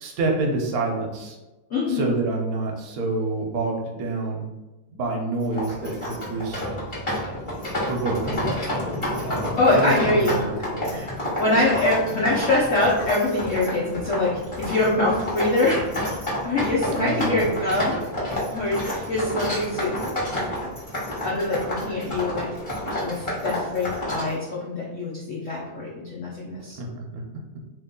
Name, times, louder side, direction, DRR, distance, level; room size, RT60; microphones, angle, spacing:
voice 1, 0.0-1.4 1.9-4.4 4.9-6.6 7.9-8.5 9.2-11.1 11.4-11.6 16.9-17.4 26.7-27.2, right 2 dB, 65° right, 0 dB, 1.0 m, -28 dB
voice 2, 1.7-2.1 9.6-10.4 10.9-11.1 11.4-14.3 14.6-15.8 16.4-18.0 18.5-20.4 21.2-22.5 23.0-26.8, left 2 dB, 60° left, -6 dB, 0.9 m, -24 dB
sound 1, 5.4-24.3, left 1 dB, 20° left, 1.0 m, -29 dB
3.0 x 3.0 x 3.7 m, 1.1 s
omnidirectional pair, 2.0 m